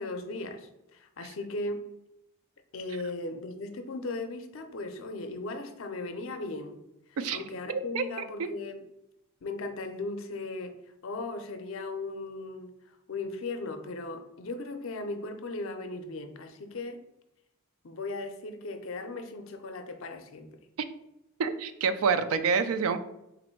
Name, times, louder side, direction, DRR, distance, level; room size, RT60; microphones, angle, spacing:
voice 1, 0.0-1.8 2.7-6.8 7.3-8.8 9.4-10.7 11.0-12.7 13.1-17.0 17.8-20.5, left 2 dB, 60° left, 7 dB, 0.5 m, -37 dB
voice 2, 7.7-8.5 21.4-23.0, right 5 dB, 75° right, 10 dB, 0.4 m, -28 dB
4.0 x 2.6 x 4.4 m, 0.88 s
head